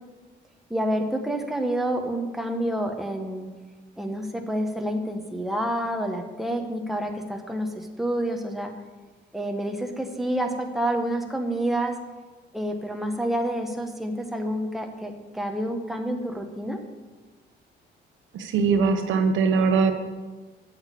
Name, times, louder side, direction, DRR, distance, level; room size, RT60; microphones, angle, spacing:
voice 1, 0.7-3.5 4.0-8.7 9.3-11.9 12.5-16.8, right 1 dB, ahead, 3 dB, 1.4 m, -28 dB
voice 2, 18.3-19.9, right 5 dB, 80° right, 6 dB, 1.1 m, -21 dB
8.4 x 6.5 x 8.4 m, 1.3 s
cardioid pair, 90°, 20 cm